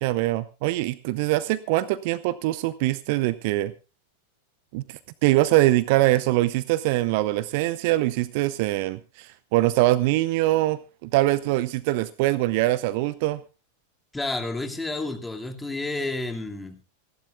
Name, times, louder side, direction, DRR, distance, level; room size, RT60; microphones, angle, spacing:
voice 1, 0.0-3.7 4.7-13.4, right 17 dB, 50° right, 18 dB, 0.7 m, -23 dB
voice 2, 14.1-16.8, left 2 dB, 5° left, 4 dB, 2.5 m, -30 dB
27.5 x 12.0 x 2.3 m, 0.30 s
figure-of-eight pair, 90°, 0 cm